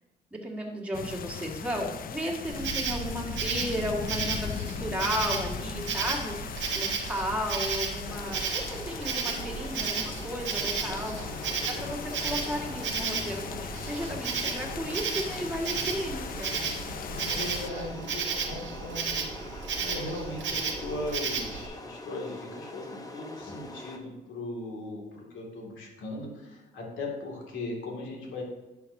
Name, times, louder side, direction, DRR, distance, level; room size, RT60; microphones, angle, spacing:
voice 1, 0.3-16.5, equal, 5° right, -2 dB, 1.8 m, -34 dB
sound 1, 0.9-17.7, left 9 dB, 45° left, 0.4 m, -39 dB
Insect, 2.5-21.7, right 5 dB, 70° right, 1.2 m, -34 dB
sound 2, 8.1-24.0, left 2 dB, 20° left, 0.9 m, -43 dB
voice 2, 17.1-28.4, left 2 dB, 75° left, -1 dB, 2.3 m, -38 dB
11.0 x 5.9 x 2.7 m, 1.1 s
cardioid pair, 90°, 20 cm